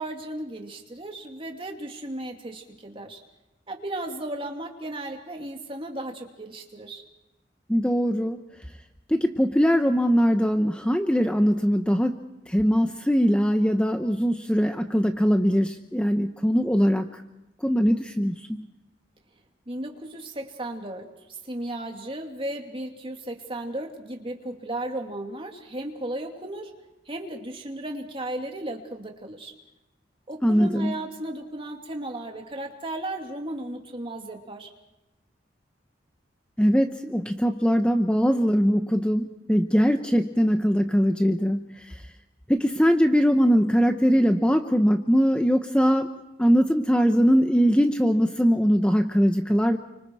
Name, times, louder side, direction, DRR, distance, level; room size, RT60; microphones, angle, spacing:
voice 1, 0.0-3.2 3.7-7.0 19.7-26.7 27.1-29.5 30.3-34.7, right 1 dB, 30° right, 2 dB, 2.7 m, -35 dB
voice 2, 7.7-8.4 9.1-12.2 12.5-17.2 17.6-18.7 30.4-31.0 36.6-42.0 42.5-46.1 46.4-49.8, equal, 5° left, 6 dB, 0.8 m, -21 dB
29.5 x 25.0 x 4.8 m, 0.96 s
head